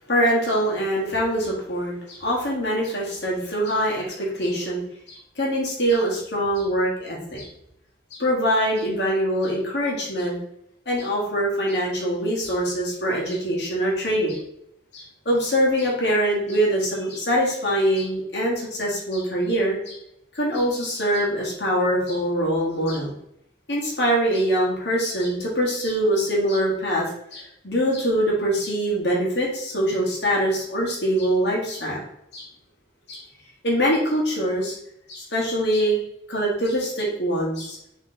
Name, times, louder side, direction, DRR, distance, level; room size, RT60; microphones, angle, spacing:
voice 1, 0.1-4.8 5.1-7.5 8.1-10.4 10.8-14.4 14.9-20.0 20.3-23.1 23.7-27.1 27.3-32.0 32.3-32.5 33.1-33.2 33.6-34.8 35.1-36.0 36.3-37.8, equal, 75° left, -4 dB, 1.4 m, -23 dB
3.9 x 3.2 x 3.9 m, 0.77 s
head